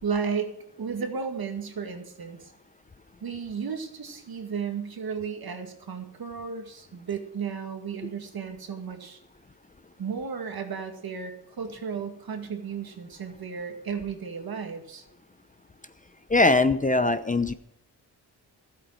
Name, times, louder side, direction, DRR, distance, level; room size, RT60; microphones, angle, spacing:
voice 1, 0.0-2.5 3.2-9.2 10.0-15.0, right 6 dB, 60° right, 5 dB, 2.1 m, -34 dB
voice 2, 16.3-17.5, left 2 dB, 20° left, 11 dB, 0.6 m, -21 dB
13.5 x 8.5 x 6.3 m, 0.78 s
cardioid pair, 90°, 41 cm